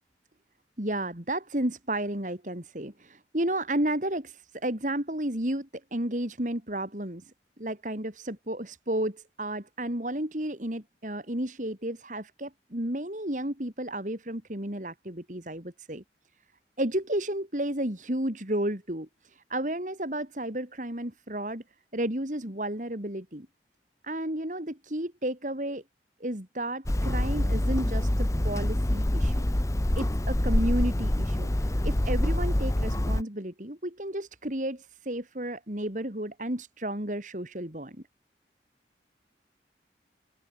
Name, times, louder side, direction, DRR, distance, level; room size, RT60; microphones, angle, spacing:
voice 1, 0.8-7.2 7.6-16.0 16.8-19.1 19.5-21.6 21.9-23.5 24.0-25.8 26.2-29.5 30.0-31.5 31.8-38.0, right 1 dB, 45° right, 3.2 m, -32 dB
Hammer, 26.9-33.2, left 1 dB, 15° left, 0.7 m, -26 dB
open air
head